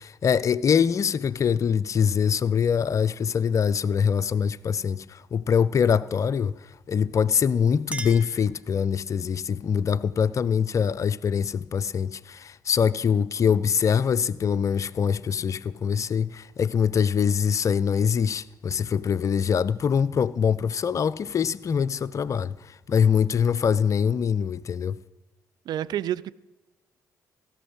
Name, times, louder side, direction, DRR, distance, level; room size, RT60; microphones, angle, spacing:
voice 1, 0.0-6.6 6.9-25.0, left 7 dB, 35° left, 0.4 m, -24 dB
Chink clink, 7.8-9.2, right 2 dB, 15° right, 0.9 m, -40 dB
voice 2, 25.7-26.3, right 11 dB, 50° right, 0.4 m, -28 dB
16.5 x 6.2 x 7.9 m
figure-of-eight pair, 45°, 9 cm